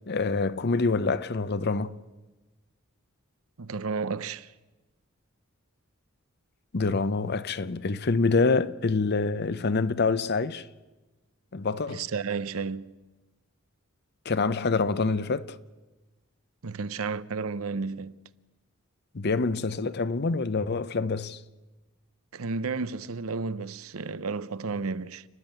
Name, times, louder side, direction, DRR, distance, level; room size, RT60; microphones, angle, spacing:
voice 1, 0.1-2.0 6.7-10.7 11.5-12.1 14.2-15.6 19.1-21.4, left 3 dB, 50° left, 0.7 m, -26 dB
voice 2, 3.6-4.5 11.9-12.9 16.6-18.2 22.3-25.2, right 4 dB, 85° right, 0.7 m, -32 dB
29.5 x 11.0 x 9.0 m
head